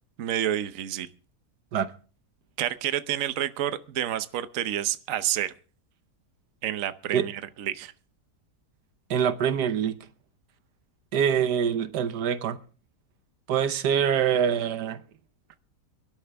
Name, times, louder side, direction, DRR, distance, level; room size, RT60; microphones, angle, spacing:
voice 1, 0.2-1.1 2.6-5.5 6.6-7.9, right 12 dB, 60° right, 1.1 m, -29 dB
voice 2, 9.1-10.0 11.1-12.6 13.5-15.0, right 8 dB, 85° right, 1.5 m, -24 dB
23.0 x 12.0 x 3.4 m
omnidirectional pair, 1.7 m